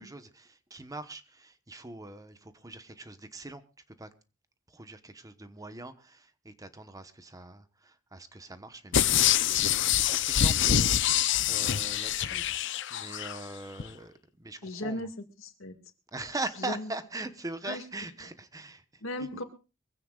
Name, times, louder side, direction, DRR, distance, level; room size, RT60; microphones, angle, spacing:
voice 1, 0.0-3.6 4.0-4.1 4.7-14.1 14.4-15.1 16.1-19.0, right 2 dB, 20° right, 1.1 m, -42 dB
sound 1, 8.9-13.4 13.8-13.9, left 10 dB, 65° left, 0.7 m, -25 dB
voice 2, 14.6-15.1 15.4-15.7 16.6-16.9 17.6-17.8 19.0-19.4, left 1 dB, 80° left, 2.1 m, -36 dB
23.5 x 16.0 x 2.4 m
head